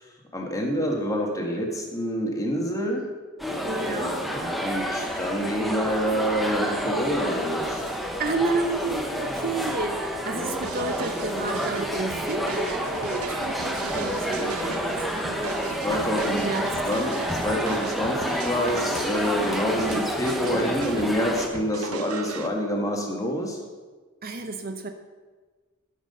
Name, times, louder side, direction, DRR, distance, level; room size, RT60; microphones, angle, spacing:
voice 1, 0.3-3.0 3.8-7.9 10.3-10.6 14.3-14.5 15.8-16.5 16.8-23.6, equal, 15° left, 1 dB, 1.8 m, -27 dB
sound 1, 3.4-21.5, equal, ahead, 1.0 m, -29 dB
voice 2, 3.6-4.1 8.2-15.0 16.2-16.7 19.8-20.0 20.4-21.1 21.9-22.0 24.2-24.9, right 3 dB, 45° right, 6 dB, 0.8 m, -31 dB
sound 2, 10.6-22.5, right 5 dB, 85° right, 0.7 m, -38 dB
13.5 x 7.5 x 5.4 m, 1.4 s
head